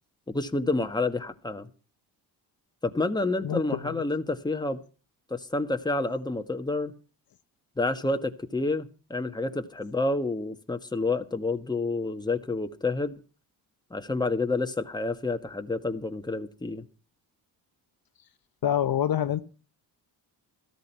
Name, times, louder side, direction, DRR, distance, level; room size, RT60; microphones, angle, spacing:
voice 1, 0.3-1.7 2.8-4.8 5.3-6.9 7.8-13.1 13.9-16.9, left 2 dB, 10° left, 1.5 m, -29 dB
voice 2, 3.4-4.0 18.6-19.4, left 10 dB, 55° left, 1.2 m, -26 dB
14.0 x 13.5 x 5.6 m
cardioid pair, 80°, 42 cm